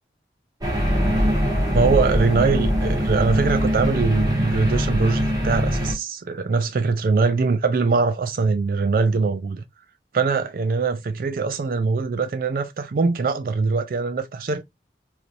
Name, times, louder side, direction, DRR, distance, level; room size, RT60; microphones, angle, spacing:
sound 1, 0.6-5.9, equal, 20° right, 1.1 m, -22 dB
voice 1, 1.7-9.6 10.1-14.6, right 4 dB, 50° right, 0.3 m, -22 dB
3.2 x 2.7 x 2.5 m
head